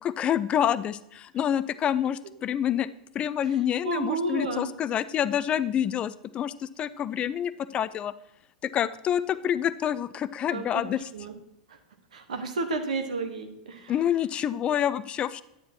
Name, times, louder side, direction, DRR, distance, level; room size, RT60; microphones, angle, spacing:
voice 1, 0.0-2.9 3.1-8.1 8.6-11.0 13.9-15.4, left 10 dB, 25° left, 16 dB, 0.3 m, -27 dB
voice 2, 3.4-4.7 10.5-11.3 11.7-11.8 12.1-14.0, right 3 dB, 65° right, 6 dB, 1.3 m, -32 dB
9.8 x 9.3 x 2.8 m, 0.83 s
figure-of-eight pair, 90°, 4 cm